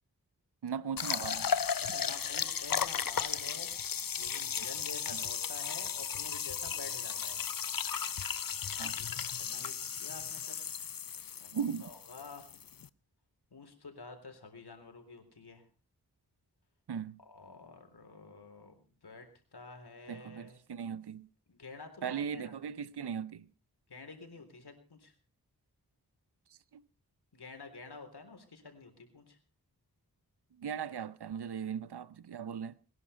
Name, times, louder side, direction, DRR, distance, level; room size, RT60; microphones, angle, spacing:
voice 1, 0.6-1.5 8.8-9.0 11.5-11.9 16.9-17.2 20.1-21.3 22.0-23.5 26.7-26.8 30.6-32.8, right 7 dB, 90° right, 0.8 m, -38 dB
sound 1, 1.0-12.9, left 7 dB, 60° left, 0.7 m, -35 dB
voice 2, 1.8-7.4 8.7-10.7 11.2-12.5 13.5-15.6 17.3-19.3 19.5-20.6 21.5-22.5 23.9-25.1 27.3-29.4, left 3 dB, 80° left, 3.8 m, -50 dB
20.5 x 11.0 x 5.6 m
cardioid pair, 45°, 39 cm